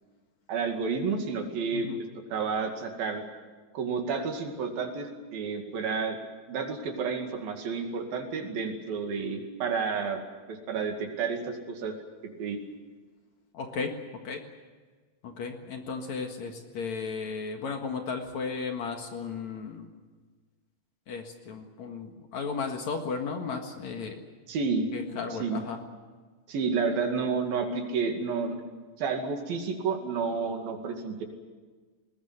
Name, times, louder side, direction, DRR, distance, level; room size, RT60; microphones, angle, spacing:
voice 1, 0.5-1.9 2.3-3.2 3.7-6.2 6.5-10.2 10.5-12.0 12.4-12.6 24.5-24.9 25.3-25.6 26.5-28.6 29.0-31.2, right 5 dB, 70° right, 4 dB, 4.1 m, -30 dB
voice 2, 13.5-13.9 14.2-14.4 15.2-19.9 21.1-24.2 24.9-25.8, left 5 dB, 55° left, 4 dB, 2.7 m, -35 dB
20.5 x 19.5 x 9.6 m, 1.4 s
omnidirectional pair, 4.3 m